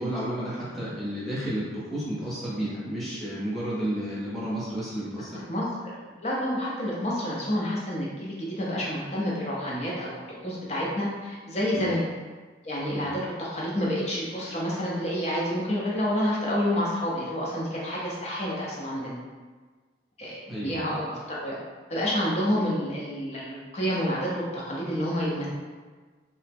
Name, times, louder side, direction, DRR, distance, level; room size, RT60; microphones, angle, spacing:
voice 1, 0.0-5.4 11.7-11.9 12.9-13.1 20.5-20.9, right 1 dB, ahead, -10 dB, 0.7 m, -32 dB
voice 2, 5.5-12.0 12.6-19.2 20.2-21.6 21.9-25.5, equal, 35° left, -5 dB, 0.6 m, -29 dB
2.8 x 2.0 x 3.4 m, 1.4 s
head